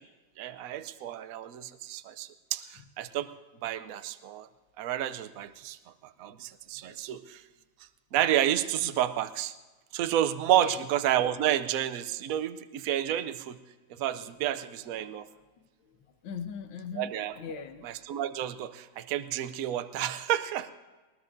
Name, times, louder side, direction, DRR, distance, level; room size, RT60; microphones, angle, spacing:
voice 1, 0.4-3.3 3.6-4.5 4.8-5.8 6.2-7.4 8.1-9.5 9.9-13.6 13.9-15.3 17.0-17.4 17.8-20.7, right 11 dB, 65° right, 10 dB, 0.9 m, -30 dB
voice 2, 14.0-14.3 15.6-16.0 16.2-17.9, left 6 dB, 85° left, 8 dB, 1.7 m, -41 dB
20.0 x 19.5 x 2.6 m, 1.3 s
omnidirectional pair, 2.0 m